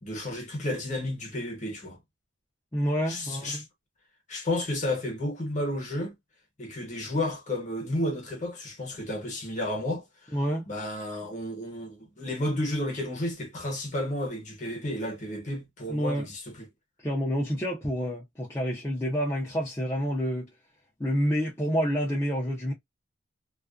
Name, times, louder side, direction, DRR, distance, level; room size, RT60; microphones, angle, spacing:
voice 1, 0.0-2.0 3.1-3.6 4.3-6.1 6.6-10.4 10.7-16.7, left 1 dB, 35° left, 0.9 m, -32 dB
voice 2, 2.7-3.6 10.3-10.7 15.9-16.3 17.0-20.5 21.0-22.7, equal, 15° left, 0.5 m, -28 dB
2.4 x 2.1 x 2.3 m
head